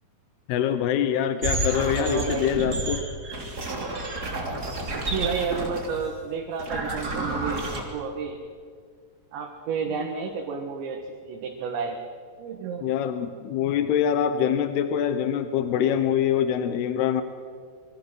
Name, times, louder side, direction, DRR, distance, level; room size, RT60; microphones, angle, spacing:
voice 1, 0.5-3.1 12.8-17.2, left 9 dB, 75° left, 9 dB, 2.8 m, -24 dB
sound 1, 1.4-6.1 6.6-7.8, right 2 dB, 25° right, 3.0 m, -30 dB
voice 2, 1.9-2.5 4.9-8.4 9.3-12.0 12.4-12.9, right 5 dB, 90° right, 1 dB, 4.0 m, -31 dB
27.0 x 23.0 x 6.4 m, 2.1 s
omnidirectional pair, 5.0 m